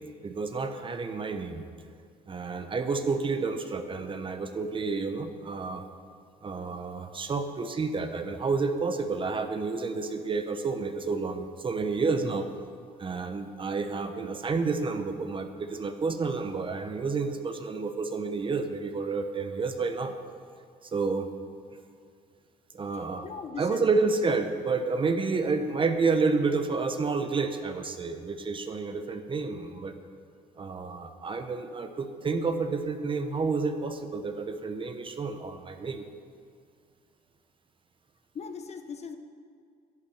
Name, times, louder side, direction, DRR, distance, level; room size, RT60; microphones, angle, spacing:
voice 1, 0.2-1.7 2.3-5.8 6.4-12.5 13.0-20.1 20.8-21.3 22.7-23.3 23.6-29.9 30.6-36.0, right 4 dB, 30° right, 7 dB, 1.0 m, -30 dB
voice 2, 23.2-23.9 38.3-39.2, left 5 dB, 40° left, 8 dB, 1.0 m, -39 dB
11.0 x 10.5 x 7.0 m, 2.2 s
cardioid pair, 110°, 17 cm